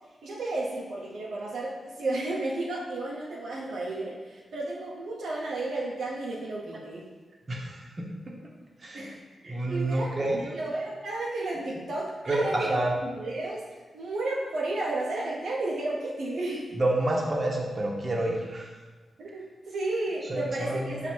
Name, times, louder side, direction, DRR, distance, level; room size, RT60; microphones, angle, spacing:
voice 1, 0.2-7.1 8.9-16.7 19.2-21.1, right 2 dB, 80° right, -4 dB, 0.6 m, -33 dB
voice 2, 7.5-8.5 8.8-9.1 9.5-10.5 12.3-12.9 16.7-18.7 20.2-21.1, right 1 dB, 45° right, -1 dB, 0.9 m, -29 dB
4.3 x 2.5 x 4.4 m, 1.3 s
supercardioid pair, 45°, 0 cm